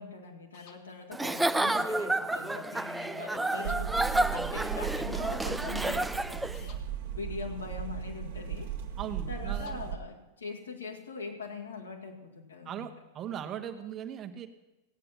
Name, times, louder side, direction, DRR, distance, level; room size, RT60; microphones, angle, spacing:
voice 1, 0.0-6.8 7.1-8.7 9.3-12.9, left 4 dB, 75° left, -1 dB, 2.2 m, -42 dB
sound 1, 0.5-0.8 3.5-3.8 6.5-6.8 9.5-9.8, left 7 dB, 45° left, 1.3 m, -53 dB
Giggle / Chuckle chortle, 1.1-6.6, right 2 dB, 5° right, 0.3 m, -30 dB
sound 2, 3.6-10.0, right 9 dB, 55° right, 1.5 m, -36 dB
voice 2, 9.0-9.9 12.6-14.5, right 9 dB, 30° right, 6 dB, 1.1 m, -39 dB
16.5 x 9.0 x 5.8 m, 1.0 s
figure-of-eight pair, 90°, 0 cm